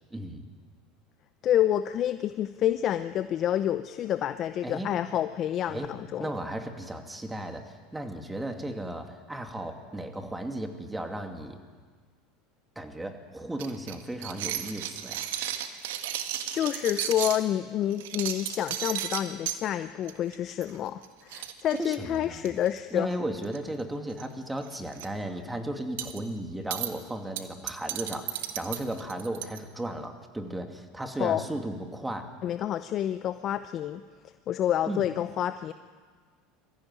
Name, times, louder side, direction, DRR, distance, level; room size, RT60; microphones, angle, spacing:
voice 1, 0.1-0.4 4.6-4.9 5.7-5.9 6.2-11.6 12.8-15.3 21.8-22.5 22.9-32.3 34.8-35.0, right 1 dB, 10° right, 5 dB, 2.7 m, -35 dB
voice 2, 1.4-6.3 16.5-23.1 31.2-31.4 32.4-34.0 34.5-35.7, left 11 dB, 45° left, 11 dB, 0.7 m, -28 dB
sound 1, 13.6-17.4 17.9-19.6 20.1-20.3 20.6-20.7 21.0-21.1 21.3-22.7 23.4-23.8 24.1-24.3 24.6-25.1 26.0-26.2 26.7-26.9 27.4-29.6, right 11 dB, 75° right, 1.6 m, -34 dB
22.0 x 15.5 x 9.3 m, 1.5 s
hypercardioid pair, 90°, 0 cm